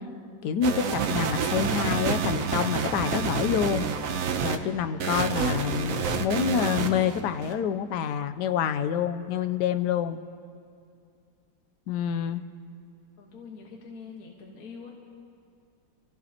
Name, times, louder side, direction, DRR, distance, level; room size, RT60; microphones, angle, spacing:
voice 1, 0.4-3.9 4.4-10.2 11.9-12.4, left 8 dB, 75° left, 11 dB, 1.2 m, -27 dB
sound 1, 0.6-4.6 5.0-7.5, right 6 dB, 60° right, 1.0 m, -28 dB
voice 2, 13.2-14.9, left 5 dB, 55° left, -1 dB, 1.8 m, -44 dB
27.5 x 15.5 x 2.9 m, 2.3 s
omnidirectional pair, 2.0 m